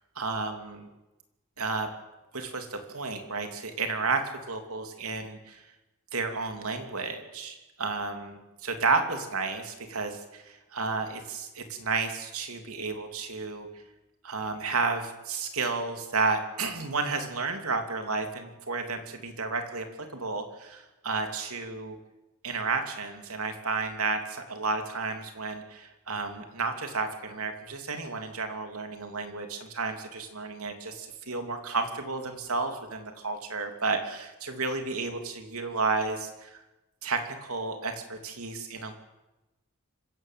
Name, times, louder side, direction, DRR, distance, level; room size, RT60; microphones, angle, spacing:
voice 1, 0.1-0.9 1.6-1.9 2.3-4.2 4.5-5.6 6.1-13.7 14.2-19.8 20.1-22.0 22.4-36.6 37.0-38.9, right 4 dB, 75° right, 5 dB, 3.2 m, -32 dB
26.0 x 16.0 x 7.8 m, 1.0 s
head